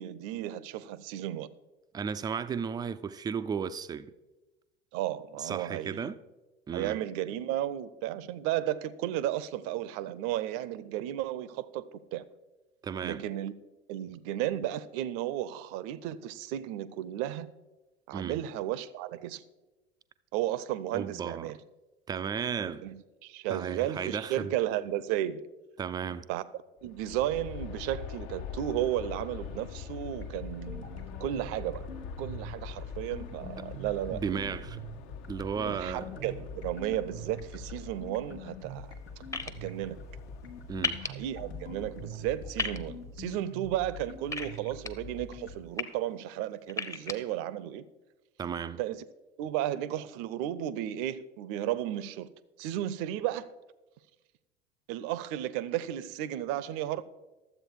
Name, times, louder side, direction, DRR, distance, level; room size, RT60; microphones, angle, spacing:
voice 1, 0.0-1.5 4.9-6.1 6.7-11.8 12.1-12.2 13.0-13.5 13.9-17.5 18.1-19.4 20.3-21.6 22.8-25.4 26.3-26.4 26.8-31.9 32.2-34.6 35.7-38.9 39.4-40.0 41.0-47.9 48.8-49.0 49.4-52.3 52.6-53.5 54.9-57.0, right 12 dB, 45° right, 0.6 m, -34 dB
voice 2, 1.9-4.1 5.4-6.2 6.7-7.0 12.8-13.2 18.1-18.4 20.9-21.5 22.1-22.8 23.5-24.5 25.8-26.3 33.3-33.5 34.1-34.8 35.3-36.0 40.7-41.0 48.4-48.8, right 6 dB, 15° right, 0.3 m, -34 dB
Aircraft, 26.8-42.9, left 8 dB, 50° left, 0.7 m, -45 dB
sound 1, 30.0-45.6, equal, 85° left, 1.3 m, -44 dB
sound 2, 39.3-39.5 40.8-41.1 42.6-42.8 44.3-44.9 45.5-45.8 46.7-47.1, left 4 dB, 10° left, 0.7 m, -32 dB
12.0 x 7.7 x 4.7 m
figure-of-eight pair, 70°, 32 cm